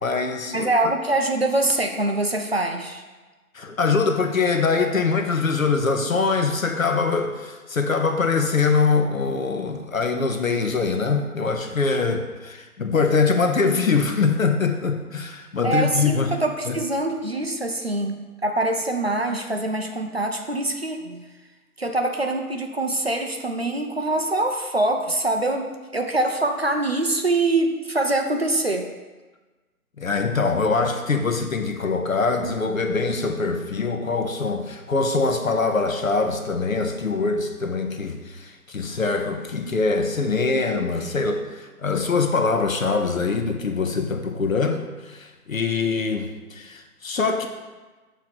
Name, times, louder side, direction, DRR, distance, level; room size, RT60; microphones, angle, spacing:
voice 1, 0.0-0.7 3.5-16.3 16.7-16.8 30.0-47.5, left 4 dB, 60° left, 5 dB, 0.9 m, -23 dB
voice 2, 0.5-3.0 15.6-21.2 21.8-28.9, right 2 dB, 45° right, 4 dB, 0.5 m, -24 dB
6.8 x 3.1 x 6.0 m, 1.2 s
figure-of-eight pair, 150°, 46 cm